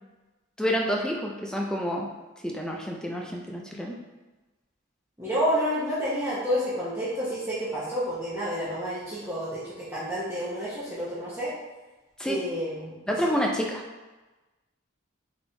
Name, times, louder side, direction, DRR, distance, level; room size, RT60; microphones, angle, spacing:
voice 1, 0.6-2.1 2.4-4.0 12.2-12.4 13.1-13.8, equal, 5° left, -1 dB, 0.4 m, -28 dB
voice 2, 5.2-11.5 12.2-12.9 13.2-13.3, equal, 10° right, -10 dB, 0.9 m, -29 dB
4.1 x 3.4 x 3.4 m, 1.2 s
head